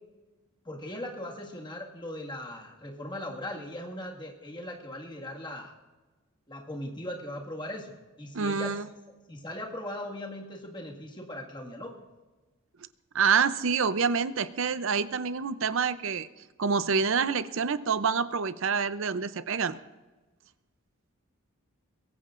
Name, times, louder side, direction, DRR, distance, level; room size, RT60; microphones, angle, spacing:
voice 1, 0.7-5.7 6.5-8.7 9.3-12.1, left 1 dB, 20° left, -1 dB, 1.8 m, -39 dB
voice 2, 8.3-8.8 13.1-16.3 16.6-19.8, right 5 dB, 60° right, 13 dB, 0.6 m, -27 dB
22.5 x 17.0 x 2.5 m, 1.2 s
head